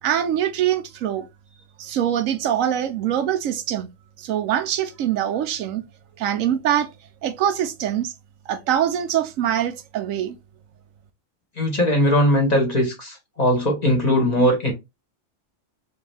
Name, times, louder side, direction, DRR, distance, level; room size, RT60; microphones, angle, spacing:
voice 1, 0.0-1.3 1.8-3.9 4.2-5.8 6.2-6.9 7.2-8.1 8.5-10.4, right 10 dB, 85° right, 1.0 m, -23 dB
voice 2, 11.6-14.7, equal, 30° left, 1.5 m, -19 dB
3.4 x 3.1 x 3.3 m
omnidirectional pair, 1.3 m